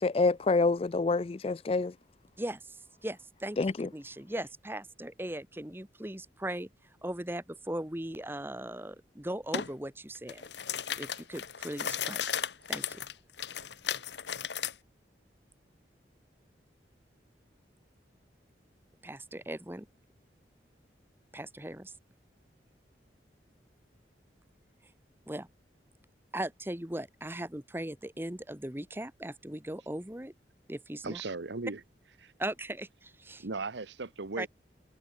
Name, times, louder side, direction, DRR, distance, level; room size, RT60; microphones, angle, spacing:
voice 1, 0.0-1.9 3.6-3.9, left 3 dB, 30° left, 0.4 m, -27 dB
voice 2, 2.4-3.6 3.9-6.7 7.0-10.4 11.0-12.3 12.7-13.0 19.0-19.8 21.3-21.9 25.3-25.5 26.3-30.3 30.7-31.2 32.4-33.4 34.4-34.5, right 1 dB, 10° right, 1.2 m, -38 dB
sound 1, 9.5-9.7 10.2-14.7, left 8 dB, 80° left, 1.6 m, -35 dB
voice 3, 31.0-31.8 32.2-32.3 33.4-34.5, right 3 dB, 85° right, 1.1 m, -37 dB
head